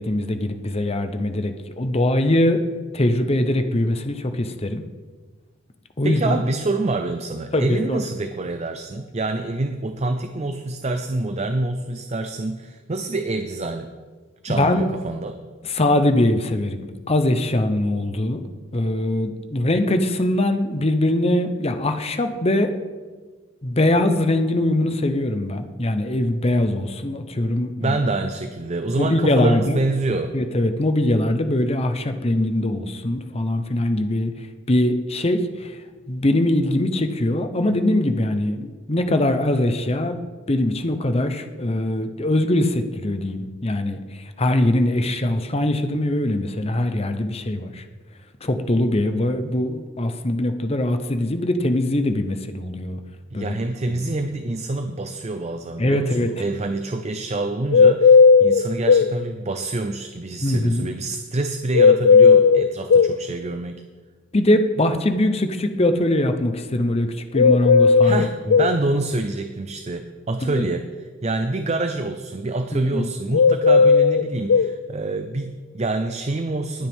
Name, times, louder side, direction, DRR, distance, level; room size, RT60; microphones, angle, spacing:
voice 1, 0.0-2.6 2.9-4.8 6.0-6.4 7.5-8.0 14.5-14.9 15.6-18.4 18.7-22.8 23.6-28.0 29.0-29.8 30.3-34.3 34.7-35.8 36.1-40.2 40.5-44.0 44.4-47.8 48.4-53.0 53.3-53.6 53.9-54.1 55.8-56.3 60.4-60.9 64.3-68.6 70.4-70.6 72.7-73.1, left 1 dB, 30° left, 8 dB, 0.8 m, -22 dB
voice 2, 6.0-13.9 14.4-15.4 27.7-30.4 53.3-63.8 68.0-76.9, right 2 dB, 35° right, 7 dB, 0.6 m, -26 dB
sound 1, 57.7-59.1 61.7-63.1 67.4-68.8 73.3-74.7, left 5 dB, 70° left, 0.3 m, -14 dB
20.0 x 8.9 x 3.6 m, 1.4 s
head